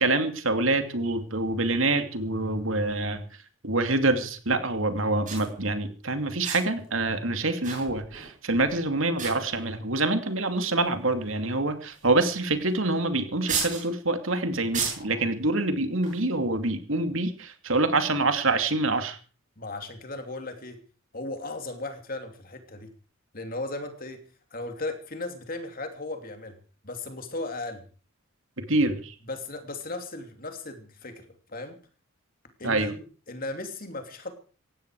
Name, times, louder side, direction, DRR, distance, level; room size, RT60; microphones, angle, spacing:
voice 1, 0.0-3.3 3.6-19.2 28.7-29.1 32.6-32.9, right 2 dB, 70° right, 7 dB, 2.7 m, -26 dB
sound 1, 5.2-5.5 6.4-6.8 7.6-8.3 8.6-8.8 9.2-9.8 10.6-10.7 11.9-12.2 12.5-12.6 13.5-13.9 14.7-15.2 16.0-16.2, right 6 dB, 35° right, 7.1 m, -33 dB
voice 2, 19.6-20.8 21.1-22.9 23.3-24.2 24.5-26.6 26.8-27.9 29.2-31.8 32.6-34.3, left 2 dB, 40° left, 6 dB, 2.9 m, -36 dB
18.5 x 15.5 x 4.8 m, 0.39 s
head